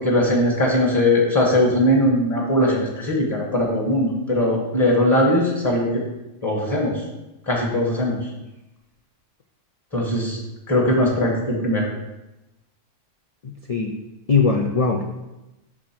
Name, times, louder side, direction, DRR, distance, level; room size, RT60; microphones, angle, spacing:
voice 1, 0.0-5.9 6.4-7.0 7.5-8.2 9.9-10.4 10.7-11.9, left 1 dB, 15° left, -3 dB, 1.1 m, -20 dB
voice 2, 13.4-14.0 14.3-15.1, left 4 dB, 60° left, 2 dB, 0.4 m, -21 dB
6.0 x 3.7 x 5.8 m, 0.99 s
omnidirectional pair, 1.3 m